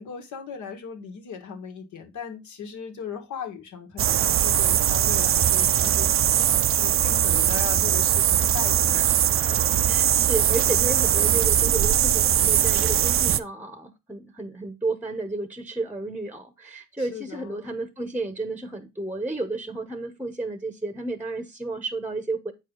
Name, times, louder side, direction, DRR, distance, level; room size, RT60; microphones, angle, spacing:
voice 1, 0.0-9.1 9.5-9.6 17.0-17.7, left 7 dB, 75° left, 1.8 m, -38 dB
sound 1, 4.0-13.4, right 10 dB, 45° right, 0.5 m, -21 dB
voice 2, 9.9-22.5, right 2 dB, 5° right, 0.9 m, -32 dB
7.7 x 4.9 x 3.8 m
cardioid pair, 90°, 30 cm